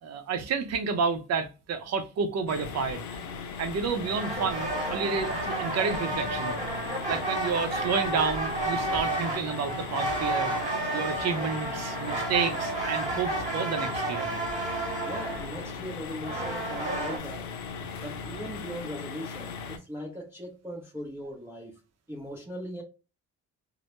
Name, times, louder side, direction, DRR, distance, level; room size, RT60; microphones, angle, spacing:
voice 1, 0.0-3.0 3.6-6.6 7.1-10.5 10.9-14.3, right 5 dB, 60° right, 0.6 m, -30 dB
sound 1, 2.5-19.8, left 5 dB, 70° left, 0.5 m, -38 dB
sound 2, 4.0-17.2, right 2 dB, 25° right, 1.1 m, -31 dB
voice 2, 15.0-17.5 18.0-21.7 22.1-22.8, equal, 10° right, 0.6 m, -39 dB
2.1 x 2.0 x 2.8 m
cardioid pair, 90°, 30 cm